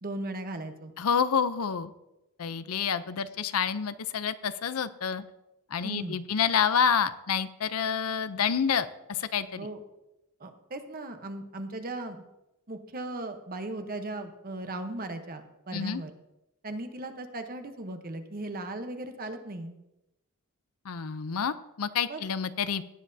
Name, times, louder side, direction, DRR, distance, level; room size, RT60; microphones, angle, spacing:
voice 1, 0.0-0.9 5.8-6.2 9.6-9.8 10.4-12.2 12.7-16.1 16.6-19.7 22.1-22.2, right 2 dB, 40° right, 7 dB, 1.0 m, -37 dB
voice 2, 1.0-1.9 2.4-5.2 5.7-9.7 15.7-16.0 20.8-22.8, left 7 dB, 75° left, 13 dB, 0.6 m, -28 dB
17.5 x 9.8 x 2.7 m, 0.93 s
head